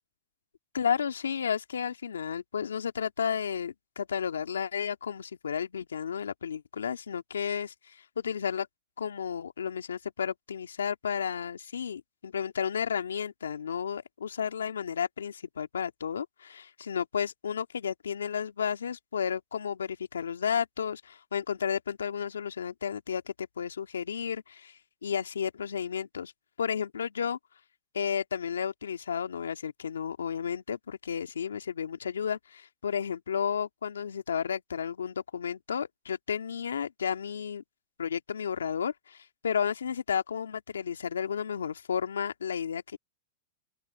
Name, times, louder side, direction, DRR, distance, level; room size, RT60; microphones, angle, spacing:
voice 1, 0.7-8.7 9.0-26.3 26.6-27.4 27.9-37.6 38.0-43.0, left 7 dB, 85° left, 2.6 m, -32 dB
open air
hypercardioid pair, 110°, 0 cm